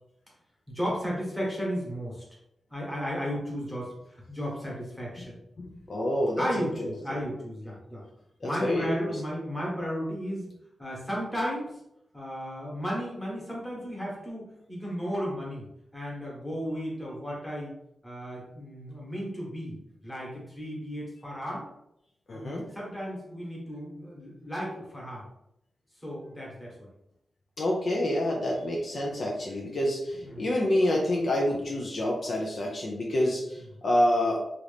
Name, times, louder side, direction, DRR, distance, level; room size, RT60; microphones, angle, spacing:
voice 1, 0.7-2.2 2.7-5.4 6.4-8.0 8.4-10.5 10.8-11.8 12.1-15.6 15.9-17.7 18.0-21.6 22.3-25.2 26.0-26.9 30.2-30.5, equal, 5° left, -5 dB, 1.2 m, -34 dB
voice 2, 5.6-6.9 8.4-8.9 22.3-22.6 27.6-34.4, left 1 dB, 50° left, -2 dB, 0.5 m, -27 dB
2.9 x 2.5 x 3.4 m, 0.83 s
wide cardioid pair, 140°, 0 cm